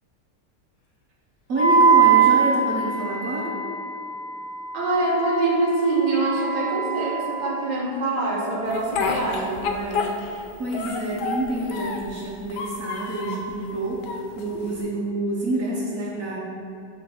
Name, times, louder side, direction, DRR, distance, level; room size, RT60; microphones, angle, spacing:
Wind instrument woodwind instrument, 1.5-7.7, right 6 dB, 35° left, 0.9 m, -22 dB
voice 1, 1.5-3.6 10.6-16.4, right 1 dB, 60° right, -4 dB, 1.0 m, -27 dB
voice 2, 4.7-10.1, right 2 dB, 35° right, -4 dB, 0.8 m, -24 dB
Speech, 8.7-10.4 10.7-12.1 12.5-13.5 14.0-14.8, left 4 dB, 80° left, 1.2 m, -29 dB
6.3 x 3.3 x 5.5 m, 2.7 s
omnidirectional pair, 1.8 m